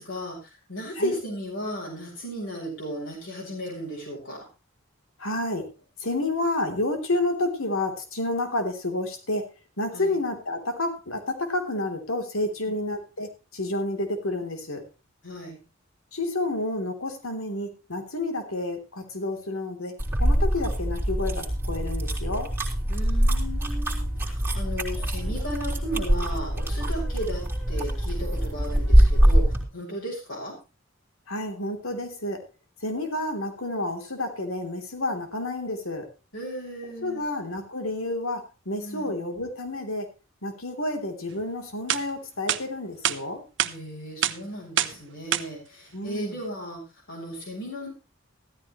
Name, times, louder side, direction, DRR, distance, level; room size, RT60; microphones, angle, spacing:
voice 1, 0.0-4.4 9.9-10.2 12.7-12.8 15.2-15.6 22.9-27.4 27.7-30.5 36.3-37.2 38.8-39.2 43.6-47.9, equal, 65° left, -4 dB, 6.4 m, -35 dB
voice 2, 5.2-5.7 6.0-9.5 9.8-14.8 16.1-22.5 31.3-32.4 32.8-36.0 37.0-40.1 40.4-43.4 45.9-46.4, left 2 dB, 85° left, 6 dB, 3.4 m, -30 dB
sound 1, 20.0-29.6, equal, 10° right, 3.4 m, -23 dB
sound 2, 22.7-22.8 24.9-29.3, left 1 dB, 15° left, 3.3 m, -49 dB
sound 3, 41.4-41.5 41.9-42.0 42.5-42.6 43.0-43.2 43.6-43.7 44.2-44.4 44.8-45.0 45.3-45.4, right 11 dB, 60° right, 0.9 m, -24 dB
15.5 x 14.0 x 3.2 m, 0.30 s
head